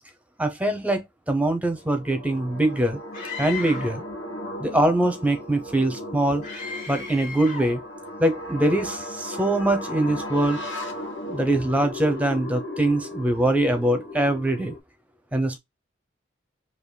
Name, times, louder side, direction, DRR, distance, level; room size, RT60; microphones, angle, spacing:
voice 1, 0.4-3.0 3.4-4.0 4.6-6.4 6.9-7.8 8.2-10.6 11.3-14.7 15.3-15.6, right 1 dB, 10° right, 0.8 m, -23 dB
sound 1, 1.7-14.8, left 1 dB, 85° left, 1.2 m, -36 dB
Screaming, 3.1-4.0 6.4-7.8, left 5 dB, 55° left, 3.0 m, -36 dB
5.0 x 2.8 x 2.2 m
head